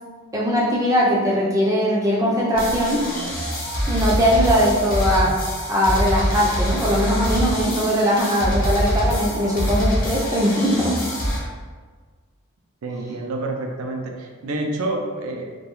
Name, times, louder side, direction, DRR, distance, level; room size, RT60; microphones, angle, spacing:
voice 1, 0.3-3.0 3.9-5.3 5.7-11.0, equal, 15° right, -5 dB, 0.4 m, -20 dB
sound 1, 2.5-11.4, equal, 40° left, 0.6 m, -25 dB
voice 2, 12.8-15.4, right 2 dB, 80° right, 3 dB, 0.4 m, -28 dB
2.3 x 2.2 x 2.9 m, 1.5 s
head